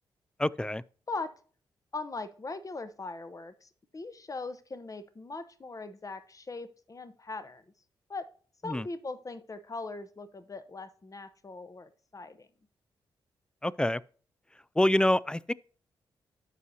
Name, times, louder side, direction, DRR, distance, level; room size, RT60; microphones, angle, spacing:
voice 1, 0.4-0.8 8.7-8.9 13.6-14.0 14.8-15.5, left 1 dB, 10° left, 0.4 m, -26 dB
voice 2, 1.9-7.6 8.1-8.3 8.6-12.5, left 3 dB, 35° left, 0.9 m, -40 dB
12.5 x 4.8 x 2.7 m
hypercardioid pair, 40°, 10 cm